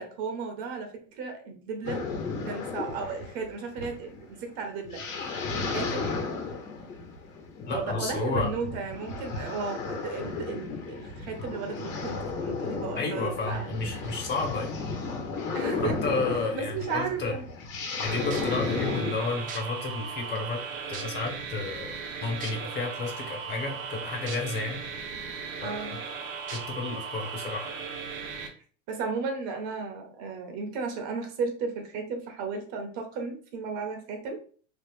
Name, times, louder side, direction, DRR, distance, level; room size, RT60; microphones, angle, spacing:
voice 1, 0.0-2.1 2.5-5.0 5.6-6.1 7.7-13.8 15.5-16.0 16.5-17.4 18.4-18.6 25.6-25.9 28.9-34.4, right 4 dB, 50° right, 5 dB, 0.7 m, -34 dB
sound 1, 1.8-19.1, left 4 dB, 80° left, 1.2 m, -34 dB
voice 2, 7.7-8.5 13.0-14.8 15.7-17.4 18.0-20.6 20.9-21.9 22.2-24.8 25.6-26.0 26.5-27.8, left 3 dB, 30° left, 2 dB, 0.6 m, -32 dB
sound 2, 18.1-28.5, right 5 dB, 80° right, 0.9 m, -37 dB
sound 3, 18.3-18.6 19.5-19.6 20.4-20.5 20.9-21.3 22.4-22.5 24.3-24.4 24.9-25.0 26.5-26.6 27.4-27.5, right 5 dB, 25° right, 0.4 m, -39 dB
2.9 x 2.1 x 3.2 m, 0.43 s
supercardioid pair, 135°, 38 cm